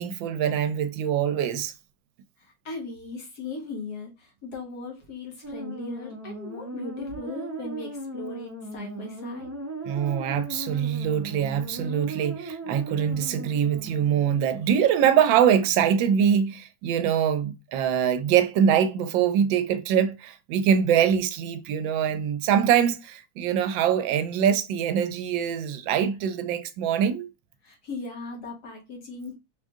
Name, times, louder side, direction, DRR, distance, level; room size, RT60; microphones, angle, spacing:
voice 1, 0.0-1.7 9.8-27.3, right 8 dB, 80° right, 1.3 m, -23 dB
voice 2, 2.4-9.5 27.6-29.3, left 3 dB, 55° left, 1.7 m, -38 dB
sound 1, 5.4-14.4, right 2 dB, 15° right, 0.5 m, -37 dB
4.9 x 2.6 x 3.6 m
omnidirectional pair, 2.1 m